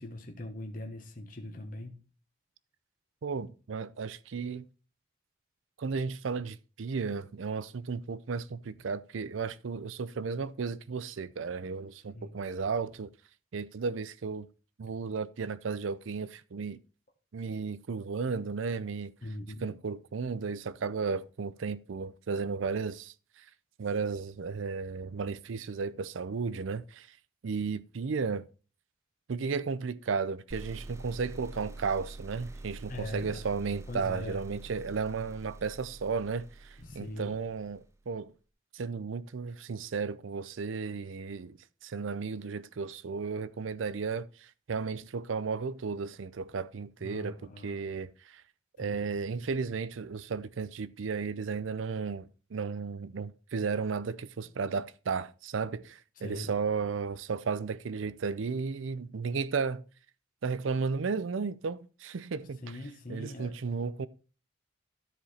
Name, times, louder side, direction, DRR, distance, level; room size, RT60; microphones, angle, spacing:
voice 1, 0.0-2.0 12.1-12.3 19.2-19.7 32.9-33.4 33.9-34.4 36.8-37.4 47.0-47.8 48.8-49.0 56.2-56.5 62.6-63.5, left 1 dB, 45° left, 1.3 m, -41 dB
voice 2, 3.2-4.7 5.8-13.1 13.5-14.5 14.8-16.8 17.3-19.1 19.6-23.5 23.8-27.2 27.4-28.4 29.3-38.3 38.7-48.4 48.8-59.8 60.4-62.8 63.1-64.1, right 5 dB, 80° right, 0.5 m, -34 dB
sound 1, 30.5-38.0, right 2 dB, 15° right, 0.5 m, -46 dB
13.0 x 4.9 x 4.2 m
head